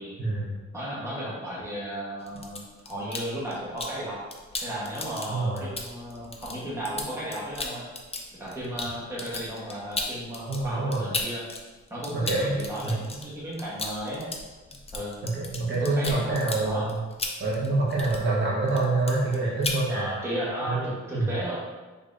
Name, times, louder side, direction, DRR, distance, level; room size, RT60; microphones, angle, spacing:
voice 1, 0.2-0.6 5.3-5.6 10.5-11.1 12.1-12.6 12.8-12.9 15.2-17.0 17.4-20.1 20.6-20.9 21.1-21.3, right 2 dB, 40° right, -6 dB, 1.0 m, -26 dB
voice 2, 0.7-4.2 4.6-7.9 8.4-11.4 11.9-14.3 14.9-15.2 15.7-16.9 19.9-21.6, right 1 dB, 10° right, -8 dB, 1.1 m, -34 dB
sound 1, 2.2-4.0 4.3-11.6 11.9-18.4 18.7-19.4 19.6-19.8, left 3 dB, 20° left, 0.4 m, -35 dB
5.2 x 3.5 x 2.5 m, 1.3 s
wide cardioid pair, 170°, 29 cm